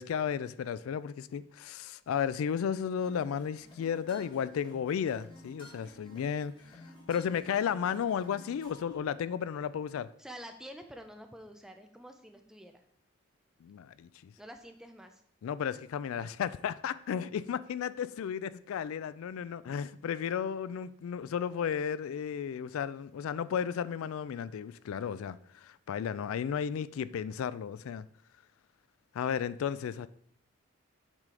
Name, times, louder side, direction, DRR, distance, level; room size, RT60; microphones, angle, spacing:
voice 1, 0.0-6.8 7.1-10.1 13.6-14.3 15.4-28.1 29.1-30.1, left 8 dB, 90° left, 0.3 m, -34 dB
sound 1, 3.0-9.0, equal, 25° left, 1.6 m, -53 dB
voice 2, 10.2-12.8 14.4-15.2, equal, 5° right, 0.5 m, -48 dB
7.4 x 4.8 x 3.8 m
head